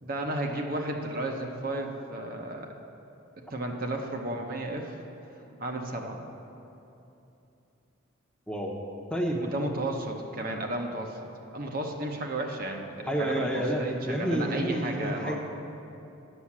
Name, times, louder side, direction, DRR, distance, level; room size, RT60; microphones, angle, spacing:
voice 1, 0.0-2.7 3.5-5.0 5.3-6.2 9.4-11.2 11.5-15.4, right 1 dB, 45° right, 2 dB, 0.9 m, -33 dB
voice 2, 9.1-9.4 13.1-15.4, right 1 dB, 5° left, 0 dB, 0.9 m, -29 dB
10.0 x 7.0 x 7.3 m, 2.9 s
head